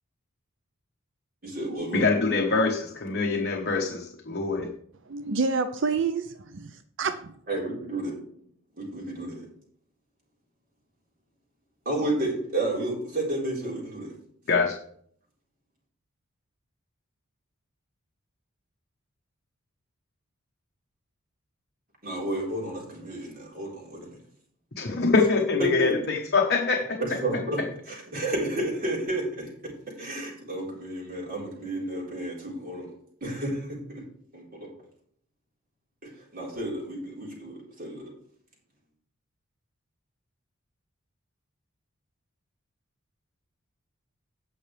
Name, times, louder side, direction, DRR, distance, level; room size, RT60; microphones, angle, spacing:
voice 1, 1.4-2.1 7.5-8.2 8.8-9.4 11.9-14.1 22.0-24.2 25.6-25.9 27.2-27.6 27.9-29.5 30.0-32.9 33.2-34.0 34.3-34.7 36.0-38.1, right 1 dB, 45° right, -4 dB, 4.1 m, -31 dB
voice 2, 1.9-4.7 14.5-14.7 24.8-27.0, left 4 dB, 50° left, 0 dB, 1.1 m, -24 dB
voice 3, 5.1-7.3, right 4 dB, 60° right, 10 dB, 0.6 m, -28 dB
17.0 x 5.8 x 3.3 m, 0.62 s
head